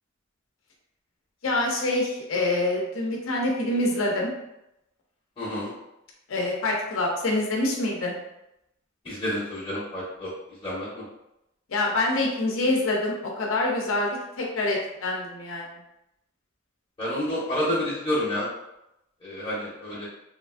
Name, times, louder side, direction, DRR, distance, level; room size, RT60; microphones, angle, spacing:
voice 1, 1.4-4.3 6.3-8.2 11.7-15.8, left 2 dB, 70° left, -1 dB, 0.6 m, -26 dB
voice 2, 5.4-5.7 9.0-10.3 10.6-11.0 17.0-18.5 19.2-20.1, left 1 dB, 25° left, -9 dB, 0.7 m, -29 dB
3.0 x 2.4 x 2.4 m, 0.86 s
head